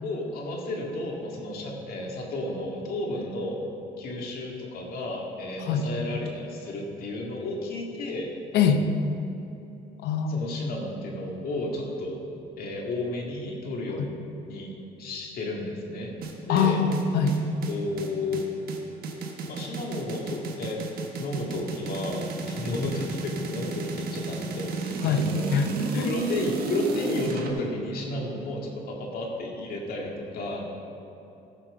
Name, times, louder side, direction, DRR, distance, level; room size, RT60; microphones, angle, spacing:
voice 1, 0.0-3.6 4.0-8.3 10.3-12.2 12.6-14.2 14.5-14.7 15.0-16.8 17.4-18.5 19.5-20.8 21.2-25.5 26.0-30.6, left 2 dB, 60° left, -1 dB, 2.1 m, -32 dB
voice 2, 8.5-8.8 10.0-10.4 14.0-14.1 16.5-17.4 25.0-25.7 25.9-26.1, left 6 dB, 80° left, 7 dB, 0.9 m, -23 dB
sound 1, 16.2-27.5, right 4 dB, 60° right, 1.3 m, -33 dB
14.5 x 6.0 x 4.9 m, 2.9 s
cardioid pair, 110°, 17 cm